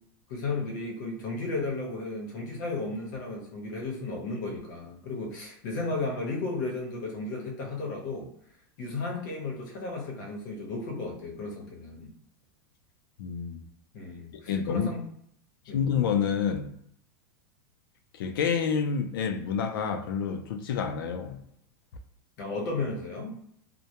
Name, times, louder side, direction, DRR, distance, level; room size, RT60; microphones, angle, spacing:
voice 1, 0.3-8.3 8.8-12.1 13.9-15.0 15.7-15.9 22.4-23.3, left 3 dB, 55° left, 0.8 m, -34 dB
voice 2, 13.2-13.6 14.3-14.9 15.7-16.7 18.1-21.4, left 7 dB, 80° left, 0.4 m, -28 dB
2.1 x 2.1 x 2.8 m
supercardioid pair, 160°, 12 cm